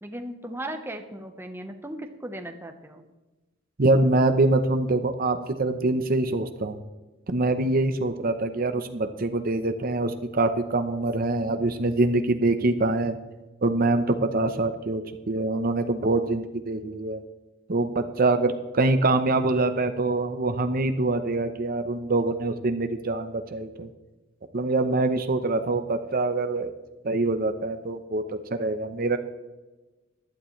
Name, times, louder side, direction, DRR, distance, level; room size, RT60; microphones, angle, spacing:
voice 1, 0.0-3.1, right 1 dB, 10° right, 5 dB, 1.0 m, -37 dB
voice 2, 3.8-6.8 7.3-13.2 13.6-17.2 17.7-23.9 24.5-26.7 27.0-29.2, right 2 dB, 50° right, 8 dB, 0.8 m, -24 dB
15.5 x 11.5 x 3.2 m, 1.1 s
head